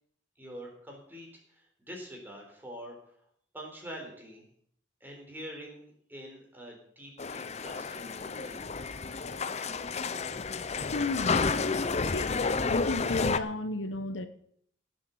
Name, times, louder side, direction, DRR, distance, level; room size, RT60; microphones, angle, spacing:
voice 1, 0.4-3.0 3.5-4.4 5.0-8.6, equal, 10° right, 4.1 m, -45 dB
sound 1, 7.2-13.4, left 4 dB, 35° left, 0.6 m, -31 dB
voice 2, 10.9-11.5 12.1-12.4 12.7-14.3, left 2 dB, 70° left, 1.0 m, -33 dB
17.5 x 7.5 x 7.2 m
head